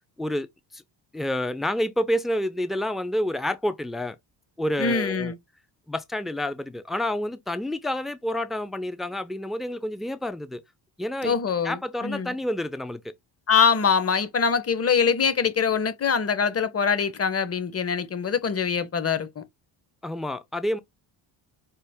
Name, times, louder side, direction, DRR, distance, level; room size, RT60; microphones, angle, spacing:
voice 1, 1.1-4.2 4.6-5.3 5.9-10.6 11.0-11.3 11.6-13.1 20.0-20.8, left 1 dB, ahead, 0.4 m, -28 dB
voice 2, 4.8-5.3 11.2-12.3 13.5-19.4, left 6 dB, 30° left, 0.9 m, -24 dB
5.6 x 2.5 x 3.5 m
cardioid pair, 90°, 48 cm